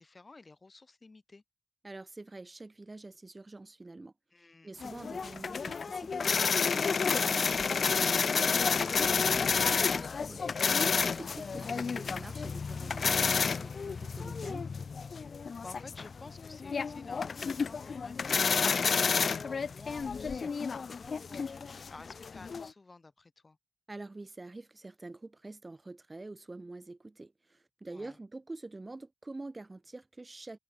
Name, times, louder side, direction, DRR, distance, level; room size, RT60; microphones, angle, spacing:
voice 1, 0.0-1.4 4.3-4.7 15.6-23.6 27.9-28.2, left 3 dB, 30° left, 7.6 m, -52 dB
voice 2, 1.8-14.7 23.9-30.6, right 2 dB, 25° right, 0.8 m, -46 dB
sound 1, 4.8-22.7, left 5 dB, 55° left, 0.4 m, -30 dB
cardioid pair, 85°, 0 cm